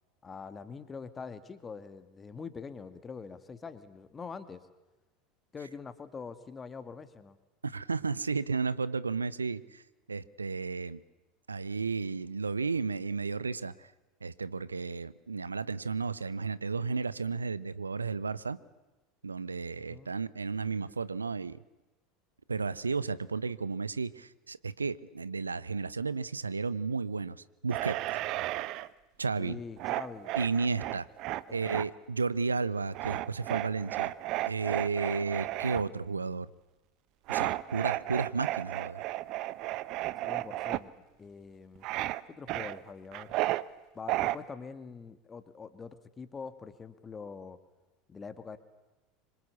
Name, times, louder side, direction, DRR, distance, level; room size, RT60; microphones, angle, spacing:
voice 1, 0.2-4.6 5.5-7.4 19.9-20.1 29.4-30.3 31.7-31.8 40.3-41.9 42.3-43.4 43.9-47.6 48.1-48.6, left 5 dB, 20° left, 11 dB, 2.2 m, -44 dB
voice 2, 7.6-9.8 10.1-11.0 11.5-13.9 14.2-18.6 19.2-21.6 22.5-28.0 29.2-29.6 30.3-31.1 31.5-34.1 34.5-36.5 37.3-39.0, right 4 dB, 80° right, 18 dB, 0.9 m, -33 dB
sound 1, 27.7-28.9 29.8-31.9 32.9-35.8 37.3-40.8 41.8-42.2 42.5-43.6 44.1-44.4, right 17 dB, 45° right, 1.0 m, -33 dB
26.0 x 25.0 x 8.4 m, 1.1 s
figure-of-eight pair, 75°, 0 cm